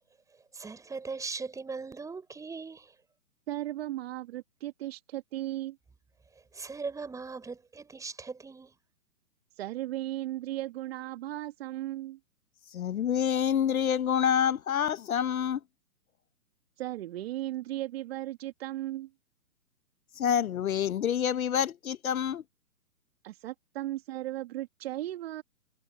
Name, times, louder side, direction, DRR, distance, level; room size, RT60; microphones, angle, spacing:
voice 1, 0.5-2.9 6.5-8.7, right 4 dB, 5° right, 5.0 m, -39 dB
voice 2, 3.5-5.8 9.6-12.2 16.8-19.1 23.2-25.4, right 15 dB, 40° right, 2.0 m, -36 dB
voice 3, 12.7-15.6 20.2-22.4, left 9 dB, 65° left, 0.9 m, -27 dB
hypercardioid pair, 135°, 46 cm